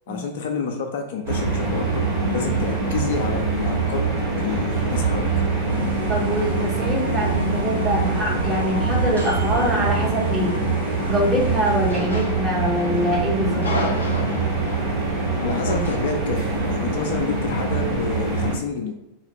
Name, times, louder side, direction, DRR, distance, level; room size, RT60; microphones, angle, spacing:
voice 1, 0.1-2.1 2.3-4.0 4.4-5.3 15.4-18.9, left 5 dB, 55° left, 4 dB, 0.3 m, -29 dB
sound 1, 1.2-18.5, right 3 dB, 65° right, 1.2 m, -24 dB
sound 2, 5.5-10.4 11.6-12.9 13.2-14.9 15.7-16.2, left 1 dB, 70° left, 0.8 m, -35 dB
sound 3, 5.7-11.9, equal, 90° right, 0.7 m, -38 dB
voice 2, 6.1-10.5 11.0-13.6, equal, 15° right, -4 dB, 0.9 m, -24 dB
2.4 x 2.4 x 2.9 m, 0.89 s
figure-of-eight pair, 90°, 0 cm